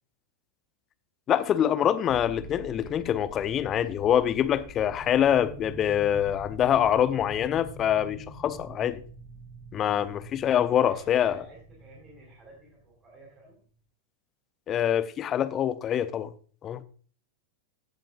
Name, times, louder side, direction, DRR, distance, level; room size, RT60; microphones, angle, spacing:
voice 1, 1.3-9.0 9.7-11.4 14.7-16.3 16.6-16.8, left 10 dB, 30° left, 0.8 m, -25 dB
sound 1, 2.1-13.5, right 1 dB, 5° right, 2.6 m, -46 dB
voice 2, 10.8-13.6, right 2 dB, 25° right, 4.7 m, -52 dB
16.0 x 7.6 x 2.5 m
figure-of-eight pair, 90°, 0 cm